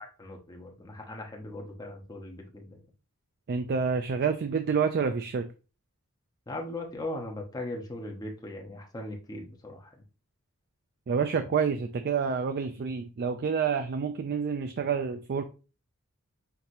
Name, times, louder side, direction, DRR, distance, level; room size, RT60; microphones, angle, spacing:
voice 1, 0.0-2.8 6.5-9.9, left 1 dB, 15° left, 1 dB, 0.9 m, -39 dB
voice 2, 3.5-5.5 11.1-15.4, right 6 dB, 45° right, 8 dB, 0.3 m, -28 dB
5.9 x 2.8 x 2.6 m, 0.33 s
head